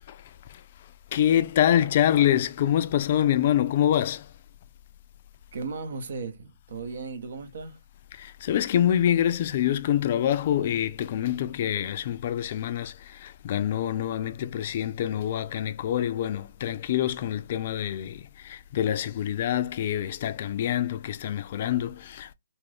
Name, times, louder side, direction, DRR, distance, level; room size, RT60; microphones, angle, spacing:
voice 1, 0.1-4.3 8.1-22.3, left 11 dB, 45° left, 0.3 m, -26 dB
voice 2, 5.5-7.8, right 4 dB, 60° right, 0.7 m, -36 dB
2.6 x 2.5 x 3.3 m
figure-of-eight pair, 135°, 0 cm